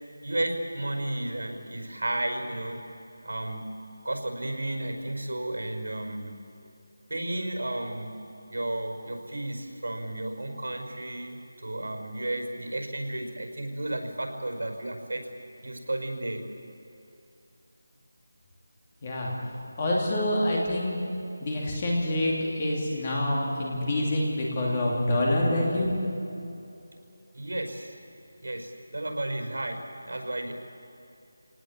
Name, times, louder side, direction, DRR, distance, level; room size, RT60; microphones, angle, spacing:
voice 1, 0.2-2.8 3.2-3.7 4.0-6.3 7.1-8.1 8.5-15.3 15.6-16.5 27.3-28.0 28.4-29.8 30.1-30.5, right 1 dB, 80° right, 4 dB, 5.5 m, -33 dB
voice 2, 19.0-19.3 19.8-21.0 21.4-25.9, left 1 dB, 20° left, -2 dB, 2.8 m, -26 dB
26.5 x 19.0 x 8.8 m, 2.7 s
figure-of-eight pair, 180°, 0 cm